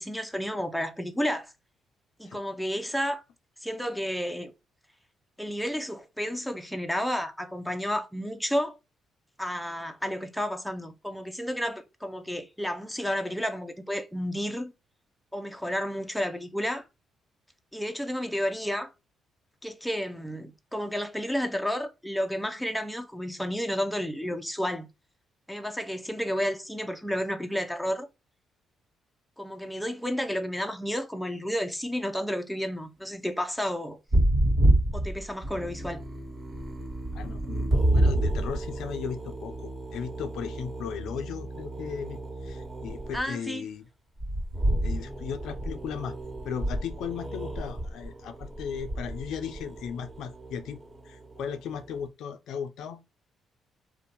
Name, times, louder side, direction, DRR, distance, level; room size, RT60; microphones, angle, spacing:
voice 1, 0.0-1.5 2.2-3.2 3.6-4.5 5.4-8.8 9.4-14.7 15.3-16.9 17.7-18.9 19.6-24.9 25.5-28.1 29.4-34.0 34.9-36.0 43.1-43.7, equal, ahead, 0.5 m, -31 dB
sound 1, 34.1-43.2 44.2-51.8, right 1 dB, 35° right, 1.4 m, -29 dB
voice 2, 37.1-43.9 44.8-46.1 46.4-50.8 51.0-53.0, left 7 dB, 80° left, 0.4 m, -36 dB
2.6 x 2.1 x 2.9 m
cardioid pair, 90°, 0 cm